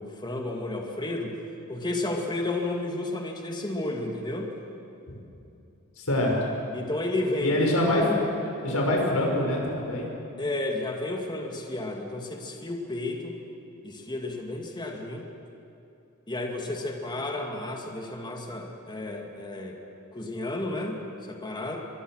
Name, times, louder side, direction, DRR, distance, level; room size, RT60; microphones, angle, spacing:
voice 1, 0.0-1.3 1.7-4.5 6.7-7.6 10.4-13.4 13.8-15.3 16.3-19.8 20.1-21.0 21.3-21.8, left 2 dB, 20° left, 1 dB, 2.2 m, -32 dB
voice 2, 6.0-6.3 7.4-8.1 8.6-10.1, left 1 dB, 80° left, -1 dB, 5.8 m, -24 dB
24.5 x 23.0 x 6.4 m, 2.8 s
head